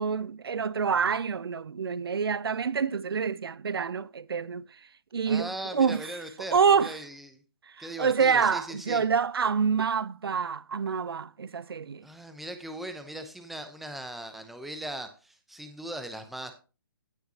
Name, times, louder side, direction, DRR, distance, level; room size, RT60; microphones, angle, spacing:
voice 1, 0.0-4.6 5.1-6.1 6.5-7.0 7.8-12.1, right 6 dB, 90° right, 0.5 m, -27 dB
voice 2, 5.3-7.4 7.8-9.0 12.0-16.5, right 1 dB, ahead, 0.7 m, -39 dB
16.5 x 5.7 x 2.9 m
hypercardioid pair, 155°, 12 cm